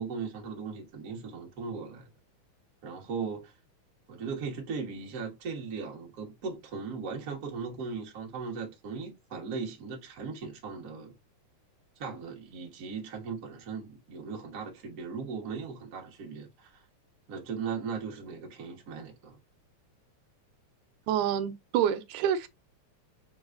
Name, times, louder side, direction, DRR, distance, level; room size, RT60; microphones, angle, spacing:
voice 1, 0.0-2.1 2.8-3.5 4.1-11.1 12.0-16.8 17.3-19.4, right 5 dB, 45° right, 1.2 m, -38 dB
voice 2, 21.1-22.5, right 9 dB, 85° right, 2.0 m, -27 dB
4.7 x 3.6 x 2.5 m
omnidirectional pair, 3.4 m